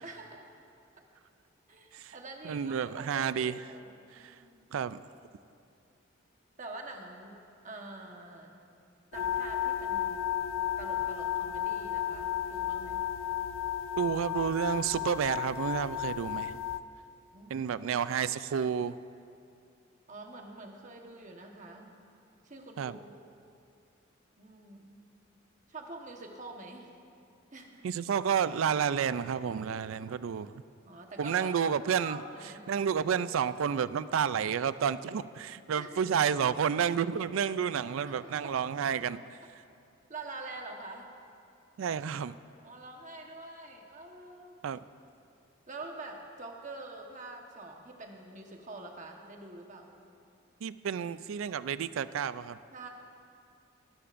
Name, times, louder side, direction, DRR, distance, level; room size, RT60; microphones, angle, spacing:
voice 1, 0.0-0.5 1.7-4.8 6.6-8.5 9.1-10.3 10.8-13.0 17.3-17.7 20.1-22.0 22.4-23.1 24.4-25.1 25.7-26.9 27.5-27.8 30.8-31.5 32.0-32.7 35.8-36.2 38.0-38.5 40.1-41.1 42.6-44.6 45.7-49.9 52.7-52.9, right 2 dB, 40° right, 2 dB, 1.2 m, -46 dB
voice 2, 2.4-3.6 4.1-4.3 4.7-5.0 14.0-16.6 17.5-19.0 22.8-23.0 27.8-30.5 31.2-32.2 32.7-39.2 41.8-42.3 44.6-44.8 50.6-52.6, right 7 dB, 75° right, 15 dB, 0.4 m, -30 dB
sound 1, 9.1-16.8, left 10 dB, 70° left, 0.4 m, -33 dB
18.0 x 13.5 x 2.6 m, 2.4 s
head